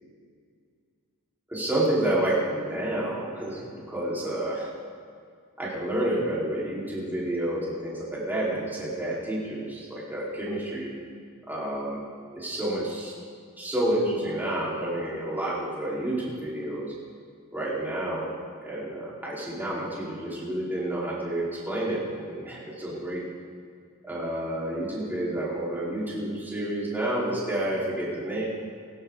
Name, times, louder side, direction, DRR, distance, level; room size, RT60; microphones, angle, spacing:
voice 1, 1.5-4.7 5.6-10.9 11.5-12.0 12.3-13.1 13.6-16.9 17.5-18.3 18.6-23.2 24.0-28.4, right 1 dB, 10° right, -8 dB, 4.6 m, -29 dB
23.5 x 11.0 x 4.1 m, 2.2 s
head